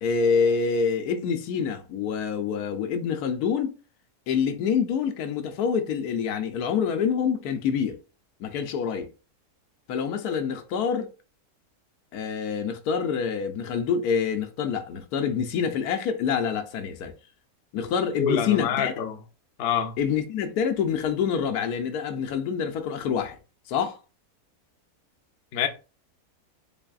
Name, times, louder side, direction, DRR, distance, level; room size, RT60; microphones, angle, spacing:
voice 1, 0.0-3.7 4.3-8.0 8.4-9.1 9.9-11.1 12.1-17.1 17.7-18.9 20.0-23.4 23.7-24.0, left 6 dB, 85° left, 1.1 m, -26 dB
voice 2, 18.2-19.2 19.6-20.0 25.5-25.7, left 8 dB, 60° left, 0.6 m, -26 dB
3.9 x 3.4 x 2.3 m
omnidirectional pair, 1.6 m